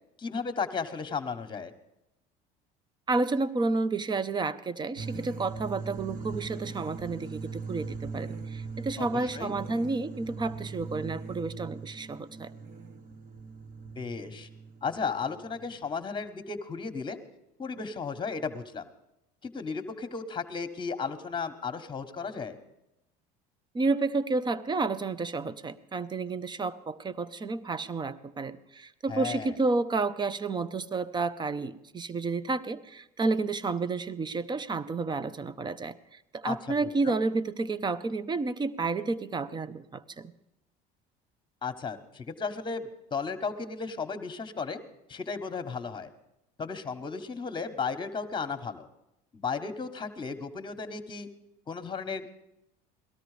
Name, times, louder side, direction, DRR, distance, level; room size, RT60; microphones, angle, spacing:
voice 1, 0.2-1.7 9.0-9.5 13.9-14.5 14.8-17.2 17.6-18.9 19.4-22.6 29.1-29.5 36.4-36.6 36.8-37.2 41.6-44.8 45.1-46.1 46.6-48.9 49.3-51.3 51.7-52.3, left 5 dB, 25° left, 8 dB, 1.4 m, -34 dB
voice 2, 3.1-12.5 23.7-40.3, right 3 dB, 25° right, 16 dB, 0.7 m, -31 dB
sound 1, 4.9-15.9, right 4 dB, 45° right, 1.7 m, -40 dB
18.5 x 13.0 x 5.1 m, 0.88 s
supercardioid pair, 100°, 19 cm